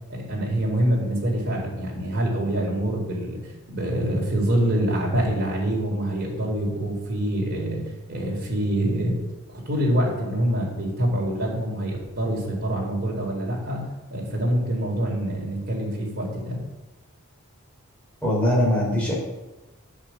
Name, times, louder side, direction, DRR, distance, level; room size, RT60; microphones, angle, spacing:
voice 1, 0.1-3.4 3.7-7.8 8.1-9.1 9.5-13.8 14.1-16.6, right 1 dB, 45° right, -2 dB, 4.6 m, -25 dB
voice 2, 18.2-19.1, equal, 5° left, -5 dB, 5.0 m, -21 dB
10.5 x 8.6 x 7.7 m, 1.0 s
head